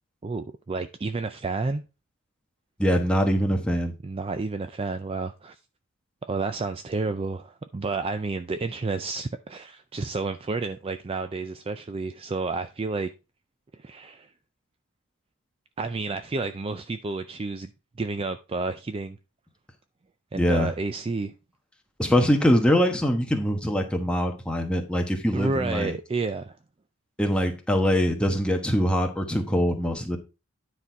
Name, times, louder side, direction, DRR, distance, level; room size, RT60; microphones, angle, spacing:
voice 1, 0.2-1.8 4.0-5.5 6.3-13.1 13.8-14.3 15.8-17.7 18.0-19.2 20.3-21.3 25.3-26.6, right 3 dB, 25° right, 0.4 m, -30 dB
voice 2, 2.8-3.9 20.3-20.7 22.0-26.0 27.2-30.2, equal, 5° left, 1.1 m, -23 dB
9.8 x 4.2 x 4.6 m
head